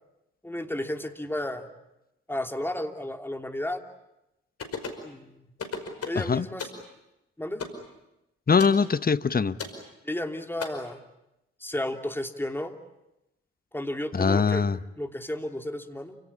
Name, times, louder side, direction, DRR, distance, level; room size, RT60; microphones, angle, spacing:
voice 1, 0.4-1.7 2.3-3.8 5.0-5.5 6.0-6.7 7.4-7.6 10.0-11.0 11.6-12.7 13.7-14.6 15.0-16.2, left 1 dB, 5° left, 5 dB, 3.1 m, -33 dB
sound 1, 4.6-5.0 5.6-6.2 6.6-6.8 7.6-7.8 8.6-8.8 9.6-9.8 10.6-10.7, left 5 dB, 50° left, 5.2 m, -34 dB
voice 2, 6.1-6.5 8.5-9.6 14.1-14.8, left 5 dB, 30° left, 14 dB, 1.1 m, -22 dB
28.5 x 18.0 x 9.8 m, 0.91 s
hypercardioid pair, 45°, 30 cm